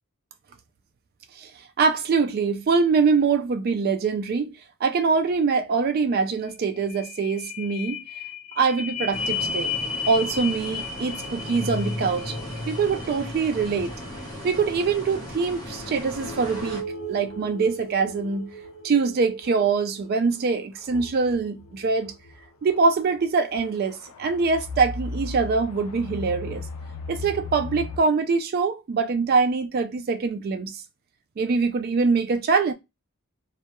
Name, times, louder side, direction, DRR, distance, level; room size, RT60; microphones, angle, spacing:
voice 1, 1.8-4.5 4.8-8.0 8.6-9.7 10.1-12.3 12.7-13.9 14.4-16.8 17.1-18.5 18.8-22.1 22.6-26.6 27.1-30.8 31.4-32.7, right 4 dB, 45° right, 0.3 m, -23 dB
sound 1, 6.1-6.2 6.5-22.4 22.9-23.0, left 3 dB, 50° left, 0.9 m, -35 dB
sound 2, 9.1-16.8, equal, 15° left, 0.8 m, -38 dB
sound 3, 18.6-18.7 19.4-19.8 20.8-20.9 22.7-23.0 23.5-28.0, left 3 dB, 80° left, 0.4 m, -36 dB
2.2 x 2.0 x 2.8 m
head